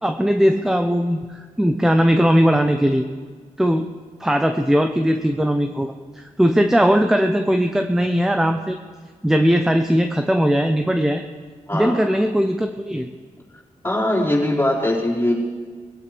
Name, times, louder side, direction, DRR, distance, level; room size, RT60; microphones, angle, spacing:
voice 1, 0.0-1.2 1.6-3.1 3.6-3.9 4.2-8.8 9.2-11.2 11.7-13.1, equal, 5° right, 5 dB, 0.7 m, -19 dB
voice 2, 11.7-12.0 13.8-15.3, left 1 dB, 15° left, -6 dB, 4.6 m, -21 dB
23.5 x 15.5 x 3.4 m, 1.6 s
wide cardioid pair, 100°, 14 cm